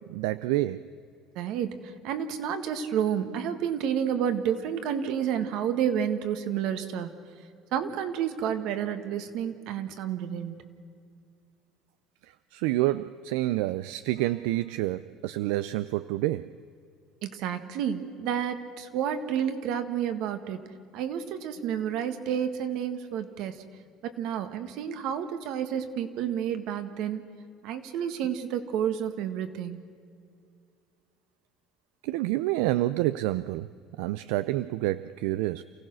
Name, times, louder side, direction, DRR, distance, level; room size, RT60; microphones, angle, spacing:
voice 1, 0.1-0.9 12.5-16.5 32.0-33.7 34.0-35.6, right 16 dB, 90° right, 14 dB, 0.4 m, -28 dB
voice 2, 1.3-1.8 2.0-7.2 7.7-10.6 17.2-20.6 20.9-23.6 24.0-27.2 27.6-29.8, right 9 dB, 70° right, 9 dB, 1.6 m, -30 dB
28.5 x 16.0 x 6.4 m, 2.3 s
cardioid pair, 120°, 0 cm